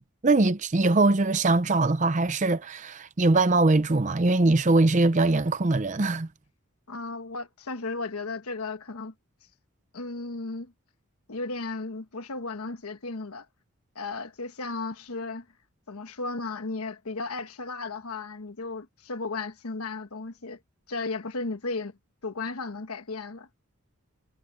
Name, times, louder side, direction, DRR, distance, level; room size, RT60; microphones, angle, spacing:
voice 1, 0.2-6.3, right 2 dB, 35° right, 0.6 m, -22 dB
voice 2, 6.9-9.1 9.9-10.7 11.3-13.5 13.9-15.5 15.9-20.6 20.9-22.0 22.2-23.5, left 3 dB, 90° left, 1.3 m, -35 dB
head